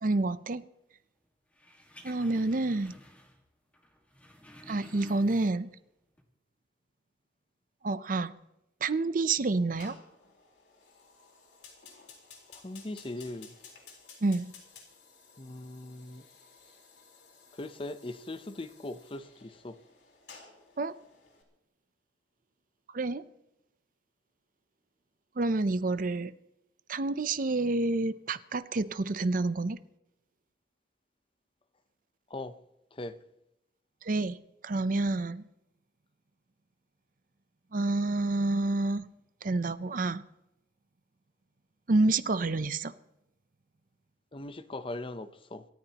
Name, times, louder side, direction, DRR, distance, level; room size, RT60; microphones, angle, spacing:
voice 1, 0.0-0.7 2.0-2.9 4.7-5.7 7.8-8.3 8.8-10.0 14.2-14.5 20.8-20.9 22.9-23.3 25.4-26.3 26.9-29.8 34.0-34.4 34.6-35.4 37.7-39.1 39.4-40.2 41.9-42.9, right 2 dB, 50° right, 0.6 m, -28 dB
sound 1, 1.5-3.5 3.7-5.8 6.1-6.2, left 1 dB, 10° left, 1.7 m, -52 dB
Fire, 9.7-21.4, left 5 dB, 70° left, 4.0 m, -55 dB
voice 2, 12.5-13.6 15.4-16.3 17.5-19.8 32.3-32.6 32.9-33.2 44.3-45.7, left 2 dB, 30° left, 0.7 m, -40 dB
27.0 x 14.0 x 2.9 m
head